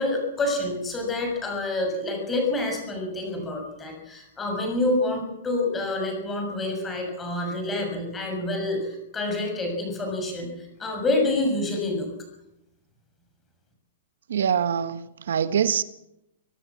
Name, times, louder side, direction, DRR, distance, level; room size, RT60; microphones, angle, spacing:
voice 1, 0.0-12.1, left 2 dB, 10° left, 6.7 m, -27 dB
voice 2, 14.3-15.8, right 8 dB, 85° right, 1.5 m, -24 dB
25.5 x 18.0 x 7.5 m
hypercardioid pair, 175°, 0 cm